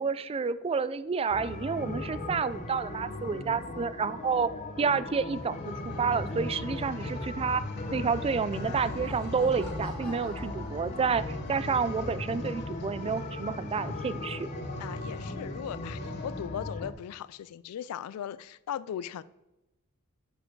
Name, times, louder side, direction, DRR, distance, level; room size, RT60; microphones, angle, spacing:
voice 1, 0.0-4.5 4.8-7.6 7.9-14.5, right 5 dB, 25° right, 0.3 m, -29 dB
sound 1, 1.3-16.9, left 2 dB, 35° left, 0.7 m, -38 dB
sound 2, 5.2-16.6 17.2-17.3, left 1 dB, 50° left, 1.0 m, -41 dB
voice 2, 8.5-9.0 14.8-19.2, left 9 dB, 80° left, 0.3 m, -38 dB
Laughter, 8.5-11.5, left 2 dB, 5° left, 2.1 m, -48 dB
6.8 x 6.6 x 4.6 m
head